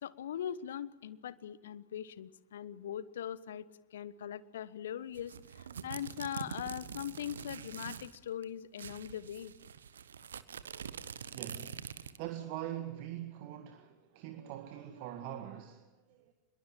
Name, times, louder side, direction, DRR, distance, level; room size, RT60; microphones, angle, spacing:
voice 1, 0.0-5.3 5.8-9.5, left 10 dB, 60° left, 1.0 m, -41 dB
sound 1, 5.1-8.2 8.4-8.5 8.8-12.3, right 7 dB, 65° right, 1.2 m, -45 dB
voice 2, 11.3-16.3, right 12 dB, 45° right, 1.9 m, -43 dB
25.5 x 22.0 x 7.5 m
figure-of-eight pair, 90°, 0 cm